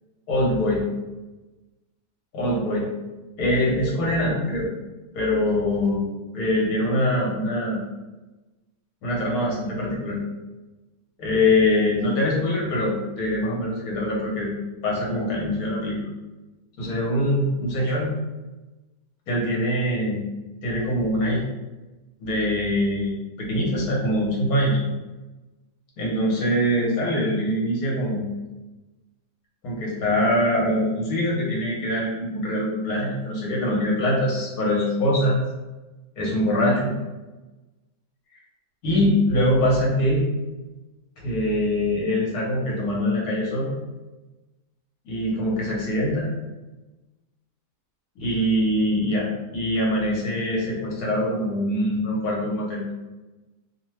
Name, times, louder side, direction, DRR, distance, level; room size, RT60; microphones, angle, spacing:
voice 1, 0.3-0.8 2.3-2.9 3.4-4.7 5.1-6.0 6.3-7.8 9.0-10.2 11.2-14.5 14.8-16.1 16.8-18.1 19.3-20.2 20.6-21.5 22.2-24.8 26.0-28.2 29.6-35.4 36.2-36.9 38.8-40.2 41.2-43.7 45.0-46.3 48.2-52.8, left 1 dB, 70° left, -3 dB, 1.3 m, -23 dB
2.8 x 2.2 x 3.2 m, 1.1 s
omnidirectional pair, 1.6 m